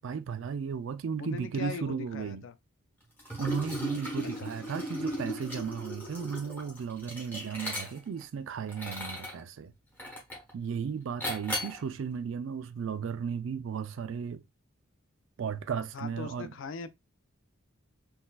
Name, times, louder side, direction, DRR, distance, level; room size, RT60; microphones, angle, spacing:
voice 1, 0.0-2.4 3.4-9.7 10.5-14.4 15.4-16.5, right 6 dB, 65° right, 0.3 m, -35 dB
voice 2, 1.2-2.6 15.9-16.9, left 4 dB, 60° left, 0.4 m, -39 dB
Liquid, 3.2-8.2 8.7-9.4 10.0-10.5 11.2-11.8, left 1 dB, 10° left, 1.0 m, -37 dB
3.9 x 2.6 x 2.2 m
head